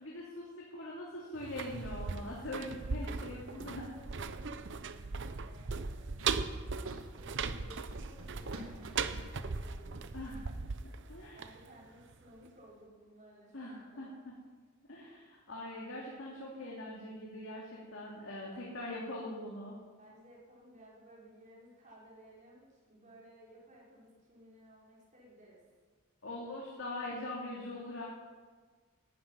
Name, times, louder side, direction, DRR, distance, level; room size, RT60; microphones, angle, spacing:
voice 1, 0.0-3.9 10.1-10.4 10.8-11.4 13.5-14.3 14.9-19.7 26.2-28.0, left 1 dB, 60° left, -4 dB, 2.7 m, -42 dB
sound 1, 1.3-12.2 12.5-12.6, right 4 dB, 60° right, 0.7 m, -39 dB
voice 2, 3.0-10.2 11.3-14.1 20.0-25.6, right 1 dB, 35° right, -5 dB, 5.2 m, -58 dB
Run, 3.0-10.8, right 1 dB, 80° right, 1.6 m, -54 dB
12.0 x 10.5 x 9.1 m, 1.5 s
head